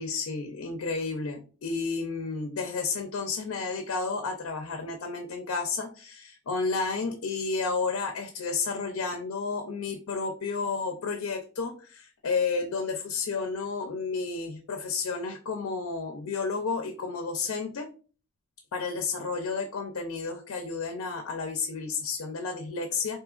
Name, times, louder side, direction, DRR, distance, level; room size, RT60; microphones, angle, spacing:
voice 1, 0.0-17.9 18.7-23.2, left 4 dB, 85° left, 4 dB, 0.5 m, -31 dB
3.7 x 2.7 x 2.4 m, 0.38 s
head